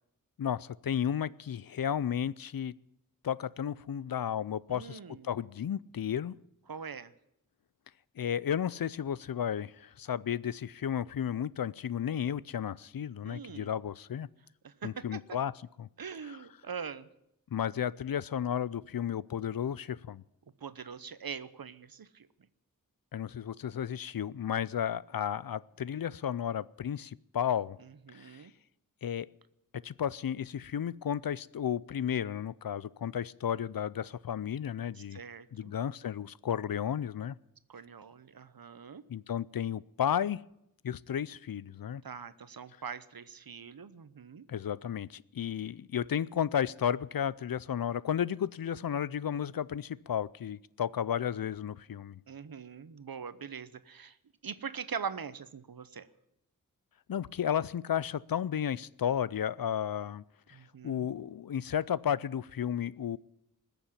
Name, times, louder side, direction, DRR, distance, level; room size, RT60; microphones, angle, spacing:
voice 1, 0.4-2.7 3.2-6.4 8.2-14.3 14.8-15.5 15.8-15.9 16.2-16.4 17.5-20.2 23.1-27.8 28.1-28.4 29.0-29.3 29.8-35.2 35.5-37.4 39.1-40.4 40.8-42.0 44.5-52.2 57.1-60.2 60.5-60.6 60.8-63.2, left 9 dB, 75° left, 21 dB, 0.5 m, -33 dB
voice 2, 4.7-5.3 6.7-7.1 13.2-13.7 14.6-15.2 16.0-17.1 20.6-22.3 27.8-28.5 35.1-35.7 37.7-39.0 42.0-44.5 52.3-54.2 54.4-56.1 60.5-61.1, right 6 dB, 80° right, 14 dB, 0.9 m, -42 dB
20.0 x 7.2 x 9.7 m, 0.82 s
wide cardioid pair, 70°, 35 cm